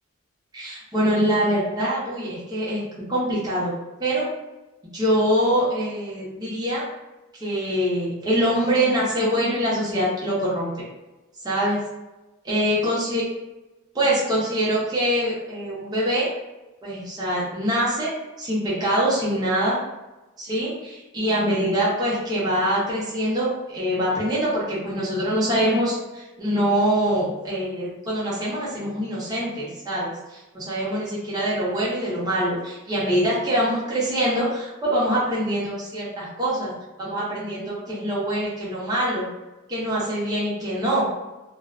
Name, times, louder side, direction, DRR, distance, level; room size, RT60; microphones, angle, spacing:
voice 1, 0.5-2.8 3.1-3.7 4.0-4.3 4.9-6.8 7.4-10.8 11.4-11.8 12.5-13.2 13.9-16.3 16.8-19.8 20.4-30.1 30.5-36.7 37.0-39.3 39.7-41.1, equal, 20° right, -8 dB, 0.7 m, -24 dB
2.4 x 2.1 x 2.4 m, 1.1 s
head